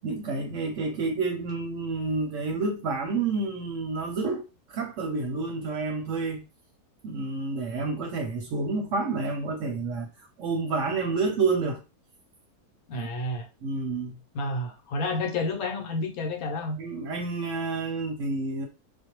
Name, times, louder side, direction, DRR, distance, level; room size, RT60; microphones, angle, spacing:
voice 1, 0.0-6.4 7.0-11.8 12.9-13.1 13.6-14.1 16.8-18.7, right 3 dB, 65° right, 0.8 m, -29 dB
voice 2, 12.9-13.5 14.3-16.8, left 2 dB, 70° left, 1.0 m, -30 dB
2.5 x 2.1 x 2.9 m
omnidirectional pair, 1.6 m